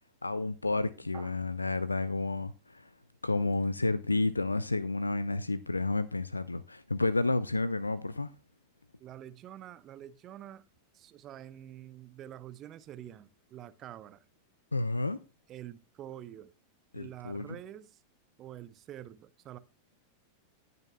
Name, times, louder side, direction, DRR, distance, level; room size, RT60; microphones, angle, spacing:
voice 1, 0.2-2.9 3.2-8.3 14.7-15.2 16.9-17.6, left 2 dB, 80° left, 0.4 m, -31 dB
voice 2, 9.0-10.7 10.9-14.2 15.5-16.5 16.9-18.0 18.4-19.6, right 11 dB, 30° right, 0.7 m, -47 dB
18.5 x 6.7 x 2.2 m
figure-of-eight pair, 90°, 0 cm